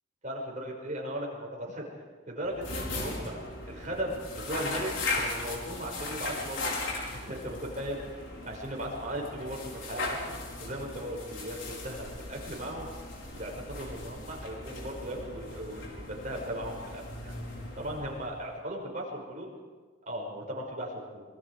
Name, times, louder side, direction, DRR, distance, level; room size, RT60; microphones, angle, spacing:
voice 1, 0.2-1.8 2.3-3.4 3.7-12.9 13.3-17.3 17.8-19.5 20.1-21.2, equal, 40° right, -1 dB, 5.8 m, -37 dB
sound 1, 2.4-18.6, left 2 dB, 85° left, 5.3 m, -38 dB
27.0 x 23.5 x 4.9 m, 1.4 s
head